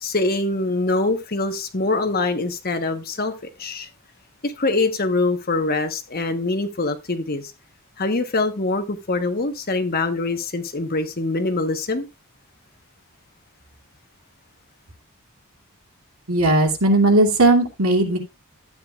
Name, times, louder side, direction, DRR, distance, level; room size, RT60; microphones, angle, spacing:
voice 1, 0.0-3.3 3.6-3.9 4.4-7.5 8.0-12.1, left 2 dB, 40° left, 1.2 m, -24 dB
voice 2, 16.3-18.2, right 2 dB, 70° right, 2.6 m, -17 dB
13.0 x 9.1 x 2.4 m
head